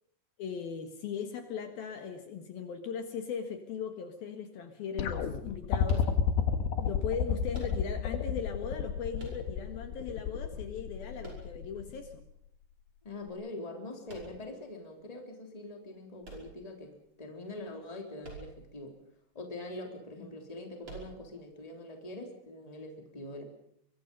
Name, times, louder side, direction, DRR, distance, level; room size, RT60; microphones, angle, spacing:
voice 1, 0.4-6.1 6.8-12.2, left 7 dB, 65° left, 6 dB, 3.2 m, -38 dB
sound 1, 5.0-12.2 13.3-13.4, left 7 dB, 90° left, 3.8 m, -31 dB
sound 2, 5.8-6.6 7.5-8.2 9.2-9.9 11.2-12.0 14.1-14.6 16.2-17.1 18.2-18.8 19.1-19.2 20.8-21.5, right 3 dB, 30° right, 6.2 m, -48 dB
voice 2, 13.0-19.0 19.3-23.4, left 2 dB, 10° left, 3 dB, 3.0 m, -43 dB
24.5 x 23.0 x 5.4 m, 0.71 s
omnidirectional pair, 4.9 m